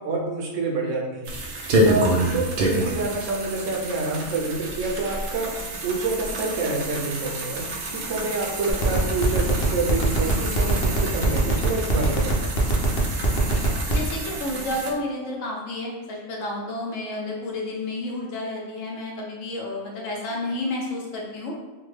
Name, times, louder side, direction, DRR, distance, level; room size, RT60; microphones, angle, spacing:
voice 1, 0.0-5.6 5.8-7.6 7.9-12.5, right 3 dB, 75° right, -1 dB, 1.0 m, -28 dB
sound 1, 1.2-14.9, right 1 dB, 60° right, 0.6 m, -28 dB
sound 2, 8.7-14.1, equal, 55° left, 0.8 m, -24 dB
voice 2, 13.9-21.5, left 2 dB, 85° left, -2 dB, 1.1 m, -31 dB
3.5 x 2.2 x 3.2 m, 1.2 s
omnidirectional pair, 1.3 m